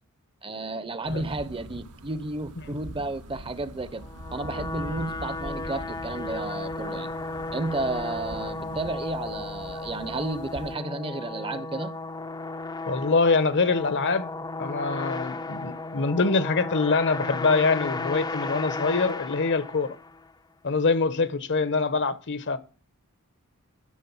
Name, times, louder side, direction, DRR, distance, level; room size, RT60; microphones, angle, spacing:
voice 1, 0.4-4.0 4.3-7.1 7.5-11.9, right 2 dB, 25° right, 0.8 m, -32 dB
sound 1, 1.0-10.7, right 1 dB, 85° right, 1.6 m, -43 dB
sound 2, 4.0-20.3, left 3 dB, 20° left, 0.6 m, -34 dB
voice 2, 12.9-14.3 14.6-20.0 20.6-22.6, left 4 dB, 55° left, 1.0 m, -24 dB
12.0 x 6.5 x 7.1 m
head